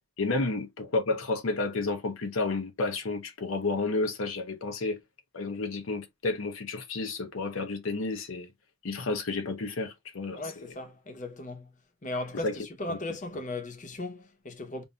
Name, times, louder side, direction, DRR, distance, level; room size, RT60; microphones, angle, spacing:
voice 1, 0.2-5.0 5.3-8.5 8.8-10.7 12.4-12.6 12.9-13.0, left 3 dB, 85° left, 0.7 m, -31 dB
voice 2, 10.3-11.7 12.0-14.8, left 2 dB, 40° left, 0.8 m, -37 dB
5.2 x 2.6 x 2.3 m
head